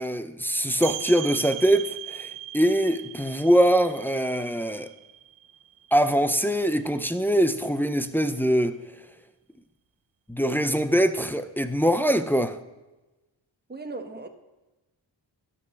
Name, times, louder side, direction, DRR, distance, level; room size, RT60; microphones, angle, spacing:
voice 1, 0.0-2.3 2.5-4.9 5.9-8.8 10.3-12.6, equal, 5° left, 0.5 m, -23 dB
sound 1, 0.8-6.3, right 11 dB, 70° right, 0.5 m, -38 dB
voice 2, 13.7-14.3, right 3 dB, 20° right, 1.1 m, -37 dB
12.5 x 5.5 x 6.3 m
wide cardioid pair, 70°, 47 cm